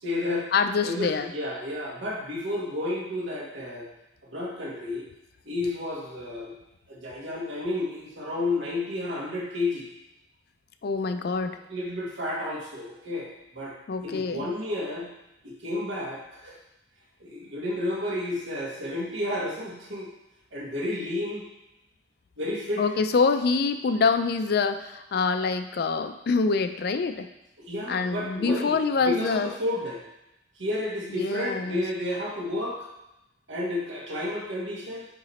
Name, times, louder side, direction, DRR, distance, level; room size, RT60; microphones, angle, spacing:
voice 1, 0.0-0.5 0.8-3.9 4.3-5.1 5.4-6.5 6.9-9.9 11.7-13.7 14.0-15.1 15.4-16.6 17.2-20.1 20.5-21.5 22.4-22.9 27.7-30.0 30.6-32.9 33.5-35.1, left 1 dB, 75° right, -4 dB, 1.7 m, -31 dB
voice 2, 0.5-1.3 10.8-11.6 13.9-14.5 22.8-27.3 27.9-29.5 31.1-31.8, left 4 dB, 55° left, 9 dB, 0.4 m, -25 dB
8.8 x 3.0 x 4.2 m, 0.90 s
head